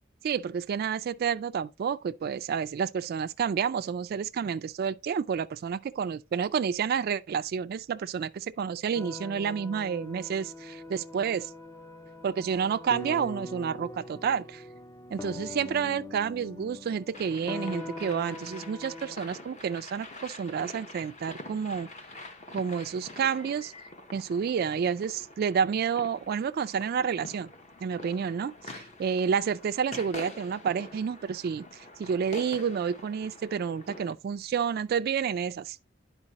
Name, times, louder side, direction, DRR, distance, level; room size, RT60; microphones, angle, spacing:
voice 1, 0.2-11.5 12.2-14.6 15.1-21.9 22.5-23.7 24.1-27.5 27.8-35.8, right 7 dB, 50° right, 0.3 m, -30 dB
sound 1, 8.9-19.2, left 2 dB, 15° left, 0.4 m, -42 dB
sound 2, 17.1-34.1, left 2 dB, 35° left, 0.9 m, -46 dB
11.0 x 4.7 x 2.9 m
head